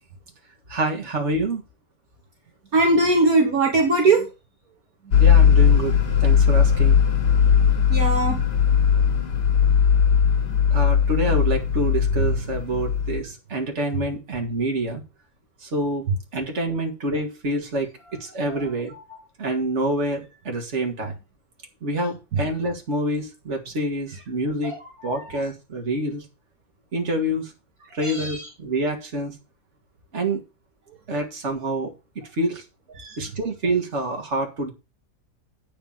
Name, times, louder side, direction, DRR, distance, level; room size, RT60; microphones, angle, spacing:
voice 1, 0.7-1.6 5.2-7.0 10.7-15.0 15.6-16.0 16.3-18.9 19.4-21.1 21.8-24.7 25.0-26.2 26.9-27.5 27.9-29.3 30.1-30.4 31.1-32.6 33.2-34.7, right 1 dB, 40° right, 2 dB, 2.4 m, -27 dB
voice 2, 2.7-4.3 7.9-8.4 10.5-10.6 18.5-18.6 19.1-19.2 22.3-22.4 24.6-24.8 25.1-25.2 28.0-28.4 33.0-33.2, right 3 dB, 60° right, 2 dB, 2.1 m, -20 dB
sound 1, 5.1-13.2, left 7 dB, 75° left, 2.3 m, -18 dB
8.8 x 5.2 x 7.3 m, 0.29 s
omnidirectional pair, 1.8 m